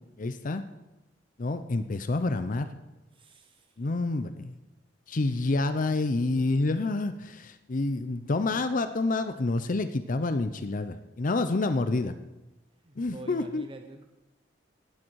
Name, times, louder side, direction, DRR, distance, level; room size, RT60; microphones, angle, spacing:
voice 1, 0.2-0.6 1.4-2.7 3.8-4.6 5.1-12.1 13.0-13.6, left 2 dB, 45° left, 10 dB, 0.6 m, -28 dB
voice 2, 3.1-3.7 5.2-5.4 12.8-14.0, right 2 dB, 30° right, 5 dB, 0.8 m, -46 dB
18.0 x 8.9 x 4.7 m, 1.0 s
head